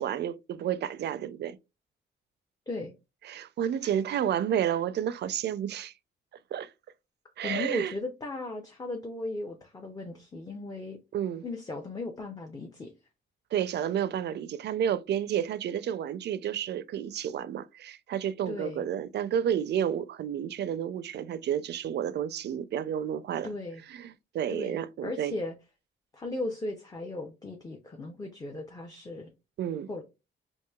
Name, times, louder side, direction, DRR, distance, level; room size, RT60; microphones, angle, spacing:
voice 1, 0.0-1.6 3.3-5.9 6.5-6.7 7.4-7.9 11.1-11.4 13.5-23.5 23.9-25.3 29.6-29.9, right 9 dB, 60° right, 0.4 m, -31 dB
voice 2, 7.4-11.0 11.4-12.9 18.5-18.9 23.4-23.8 24.5-25.5 26.1-29.3 29.9-30.0, left 2 dB, 20° left, 0.5 m, -37 dB
4.6 x 2.6 x 2.3 m
wide cardioid pair, 145°, 20 cm